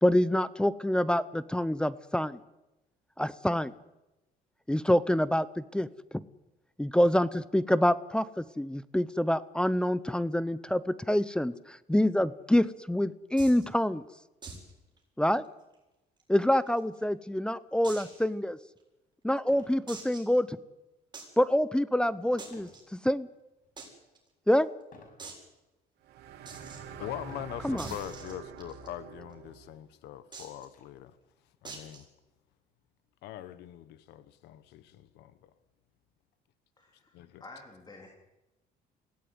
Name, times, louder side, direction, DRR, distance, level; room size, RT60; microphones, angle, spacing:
voice 1, 0.0-2.4 3.2-3.7 4.7-5.9 6.1-6.2 6.8-14.0 15.2-15.4 16.3-18.6 19.2-20.6 21.4-23.3 24.5-24.7 27.6-27.9, left 1 dB, 5° left, 0.7 m, -26 dB
sound 1, 13.4-13.6 14.4-14.7 15.0-15.1 15.4-15.5 16.2-17.0 17.8-18.2 18.8-18.9 19.9-20.4 21.1-21.3 22.4-22.8 23.8-23.9 24.1-24.2 24.5-24.6 25.2-25.4 26.4-26.8 27.8-28.9 30.3-30.6 31.6-32.0, right 4 dB, 25° right, 7.8 m, -44 dB
sound 2, 18.5-18.6 19.4-19.9 20.3-20.6 22.5-22.9 23.5-23.9 24.9-25.3 26.0-26.1 27.2-27.7 28.7-28.8 29.2-29.3 29.7-30.8, left 3 dB, 55° left, 6.0 m, -55 dB
sound 3, 26.0-29.8, right 6 dB, 75° right, 3.1 m, -46 dB
voice 2, 27.0-31.2 31.6-32.1 33.2-35.5 37.1-37.4, left 12 dB, 85° left, 1.3 m, -42 dB
voice 3, 36.8-37.1 37.4-38.1, left 2 dB, 25° left, 3.6 m, -49 dB
22.5 x 16.5 x 9.7 m
cardioid pair, 110°, 17 cm